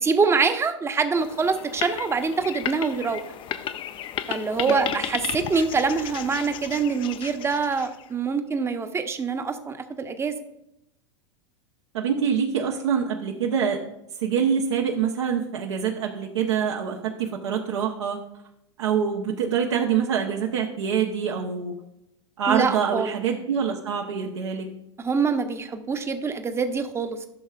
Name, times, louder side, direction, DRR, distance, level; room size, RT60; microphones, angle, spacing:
voice 1, 0.0-3.2 4.3-10.3 22.5-23.1 25.0-27.2, right 5 dB, 15° right, 8 dB, 0.8 m, -25 dB
sound 1, 1.2-8.1, left 10 dB, 35° left, 0.5 m, -34 dB
voice 2, 11.9-13.8 14.2-18.2 18.8-21.7 22.4-24.7, right 7 dB, 70° right, 0 dB, 1.0 m, -25 dB
13.0 x 6.4 x 2.4 m, 0.83 s
hypercardioid pair, 95°, 15 cm